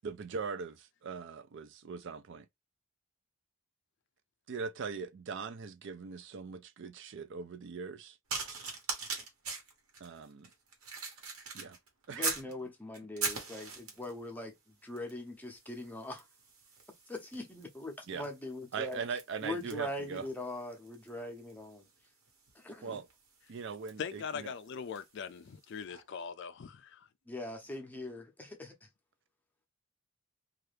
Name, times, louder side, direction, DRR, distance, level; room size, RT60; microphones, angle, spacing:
voice 1, 0.0-2.5 4.5-8.1 10.0-10.5 11.5-11.8 12.1-12.2 18.1-18.2 18.7-20.2 22.8-23.1 23.5-24.5, right 5 dB, 60° right, 0.4 m, -40 dB
sound 1, 8.3-12.5 12.9-14.2 15.0-15.2 15.5-25.2 25.9-26.0, right 4 dB, 85° right, 1.1 m, -42 dB
voice 2, 12.1-16.3 17.1-21.9 22.5-23.0 27.3-28.9, left 2 dB, 10° left, 0.7 m, -42 dB
voice 3, 24.0-27.1, left 6 dB, 55° left, 0.4 m, -41 dB
2.8 x 2.4 x 3.2 m
head